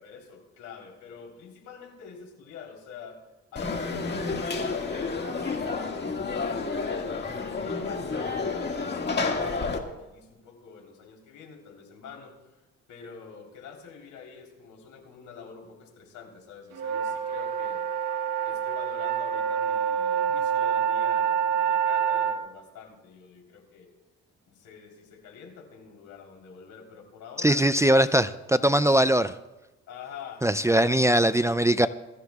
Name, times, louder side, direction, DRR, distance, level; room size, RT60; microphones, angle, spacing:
voice 1, 0.0-3.2 3.5-12.6 12.9-17.9 18.4-23.9 24.5-28.3 29.9-31.2, left 6 dB, 85° left, 1 dB, 3.7 m, -46 dB
Conversation / Crowd, 3.5-9.8, left 4 dB, 35° left, 1.9 m, -30 dB
sound 1, 16.7-22.4, right 8 dB, 85° right, 1.3 m, -26 dB
voice 2, 27.4-29.3 30.4-31.9, right 1 dB, 10° right, 12 dB, 0.4 m, -21 dB
22.5 x 15.0 x 2.4 m, 1.0 s
cardioid pair, 90°, 30 cm